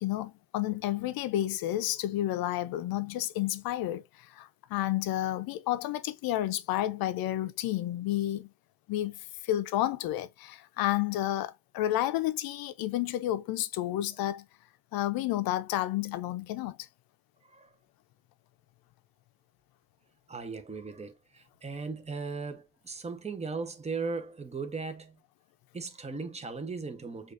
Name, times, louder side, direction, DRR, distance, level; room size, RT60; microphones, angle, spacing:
voice 1, 0.0-8.5 8.9-14.5 14.9-16.8, left 14 dB, 75° left, 0.6 m, -31 dB
voice 2, 17.4-17.8 20.3-25.2 25.7-27.3, right 4 dB, 20° right, 0.9 m, -37 dB
6.2 x 2.6 x 2.5 m
supercardioid pair, 60°, 36 cm